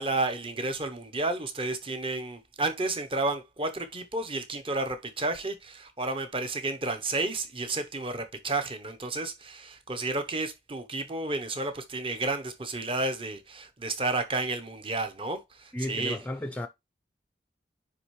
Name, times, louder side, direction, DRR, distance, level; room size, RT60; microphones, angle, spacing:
voice 1, 0.0-16.2, right 2 dB, 30° right, 0.8 m, -31 dB
voice 2, 15.7-16.7, left 1 dB, 10° left, 0.4 m, -33 dB
9.8 x 3.3 x 3.1 m
head